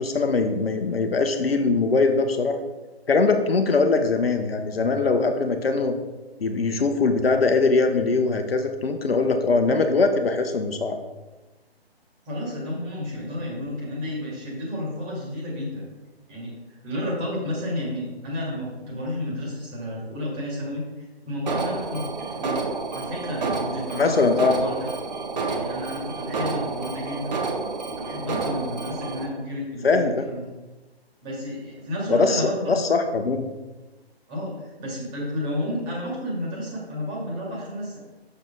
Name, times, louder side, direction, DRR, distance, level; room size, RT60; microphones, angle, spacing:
voice 1, 0.0-2.6 3.1-5.9 6.4-11.0 23.9-24.6 29.8-30.3 32.1-33.5, left 3 dB, 65° left, 6 dB, 1.0 m, -21 dB
voice 2, 12.3-15.8 16.3-22.6 22.9-24.9 25.5-27.3 28.0-30.5 31.2-32.8 34.3-38.0, left 1 dB, 15° right, -4 dB, 2.1 m, -31 dB
Alarm, 21.5-29.3, right 4 dB, 45° right, 1.0 m, -30 dB
7.4 x 6.8 x 3.8 m, 1.1 s
figure-of-eight pair, 150°, 32 cm